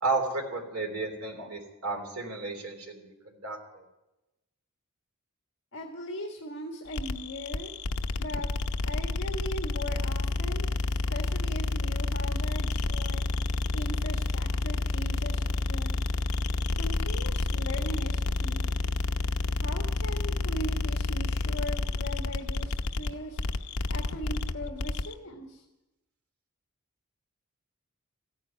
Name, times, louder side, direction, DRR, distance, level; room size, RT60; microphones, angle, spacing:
voice 1, 0.0-3.8, right 3 dB, 85° right, 2 dB, 3.2 m, -33 dB
voice 2, 5.7-7.7 8.2-8.5 8.8-13.3 13.7-16.0 16.8-18.7 19.6-23.4 23.9-25.6, equal, 55° left, 1 dB, 1.6 m, -39 dB
sound 1, 6.9-25.1, left 2 dB, 80° left, 0.7 m, -29 dB
14.5 x 9.3 x 9.1 m, 0.99 s
head